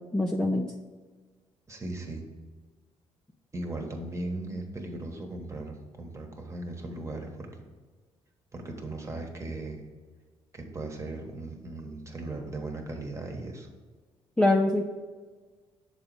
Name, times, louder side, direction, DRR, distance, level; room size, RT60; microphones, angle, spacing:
voice 1, 0.1-0.7 14.4-14.8, left 2 dB, 5° left, 0 dB, 0.6 m, -24 dB
voice 2, 1.7-2.3 3.5-7.5 8.5-9.9 10.5-13.7, right 2 dB, 25° right, 3 dB, 1.3 m, -37 dB
6.8 x 4.0 x 4.8 m, 1.4 s
cardioid pair, 85°, 12 cm